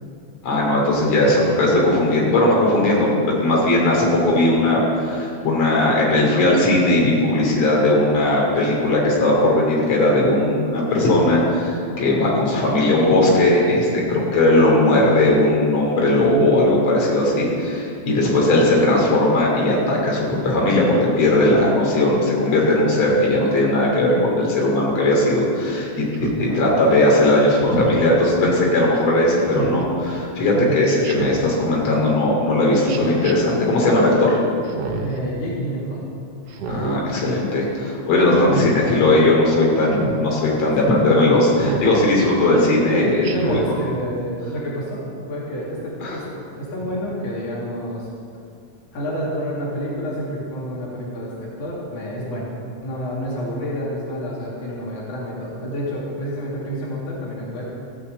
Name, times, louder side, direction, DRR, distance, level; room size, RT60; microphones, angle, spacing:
voice 1, 0.4-34.4 36.7-43.6 46.0-46.2, left 1 dB, 60° left, -3 dB, 3.9 m, -18 dB
voice 2, 18.1-18.4 26.4-26.6 30.5-30.9 34.9-36.1 40.6-40.9 43.2-46.3 46.5-48.1 48.9-52.5 52.8-57.7, equal, 80° left, -5 dB, 3.9 m, -29 dB
Speech synthesizer, 26.1-26.5 27.6-28.1 29.5-29.8 31.0-31.5 32.9-33.3 34.6-35.2 36.5-37.0 38.3-38.7 39.9-40.2 41.6-41.9 43.2-43.7, right 6 dB, 60° right, 1.8 m, -28 dB
15.0 x 7.9 x 8.0 m, 2.4 s
omnidirectional pair, 3.4 m